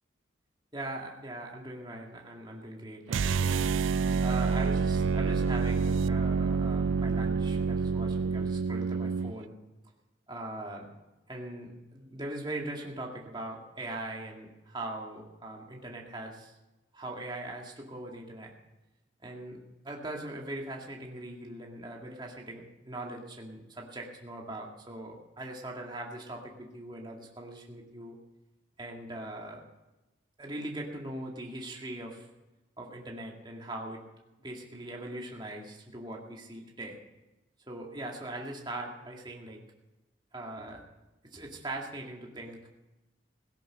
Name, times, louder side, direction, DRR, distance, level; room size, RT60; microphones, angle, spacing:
voice 1, 0.7-3.8 4.2-9.5 10.3-10.9 11.3-16.5 16.9-18.5 19.2-28.2 28.8-29.6 30.4-32.3 32.8-34.0 34.4-37.0 37.7-39.6 40.3-40.8 41.2-42.6, right 1 dB, 25° right, -1 dB, 2.2 m, -41 dB
sound 1, 3.1-9.3, right 5 dB, 85° right, 0.4 m, -27 dB
17.5 x 10.5 x 6.4 m, 1.0 s
head